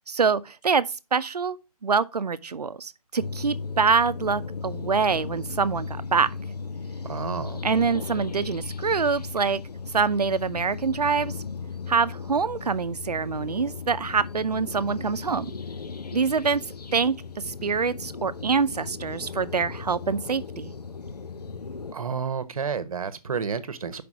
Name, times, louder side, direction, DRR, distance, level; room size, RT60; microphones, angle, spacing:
voice 1, 0.1-0.8 1.1-1.6 1.8-6.3 7.6-9.6 9.9-11.3 11.9-15.5 16.1-16.6 16.9-17.2 17.4-20.7, right 5 dB, 85° right, 0.7 m, -25 dB
sound 1, 3.2-21.9, left 5 dB, 85° left, 0.8 m, -36 dB
voice 2, 7.0-7.6 21.9-24.0, right 6 dB, 60° right, 1.1 m, -30 dB
6.0 x 5.1 x 4.8 m
figure-of-eight pair, 155°, 20 cm